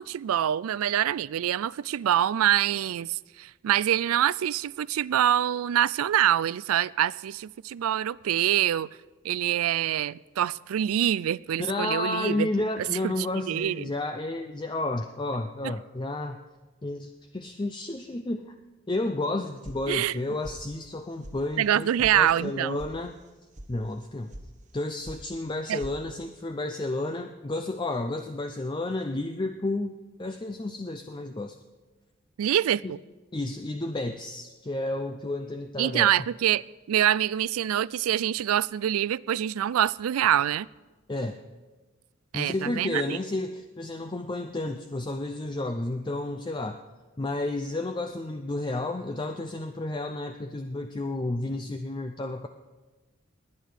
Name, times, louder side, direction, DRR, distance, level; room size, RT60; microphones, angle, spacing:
voice 1, 0.0-8.9 9.2-12.5 13.0-13.9 19.9-20.1 21.6-22.8 25.7-25.8 32.4-33.0 35.8-36.6 36.9-40.7 42.3-43.2, right 11 dB, 90° right, 0.3 m, -25 dB
voice 2, 11.6-16.4 16.8-18.5 18.9-23.1 23.7-24.3 24.7-31.6 32.8-32.9 33.3-36.1 41.1-41.4 42.3-46.8 47.2-52.5, left 2 dB, 20° left, 0.5 m, -31 dB
sound 1, 19.6-20.2 20.4-21.0 21.2-21.3 21.7-22.1 22.4-22.9 23.2-23.7 24.0-24.5 24.7-25.2 25.5-26.0, right 1 dB, 35° right, 1.3 m, -43 dB
20.0 x 9.3 x 5.0 m
head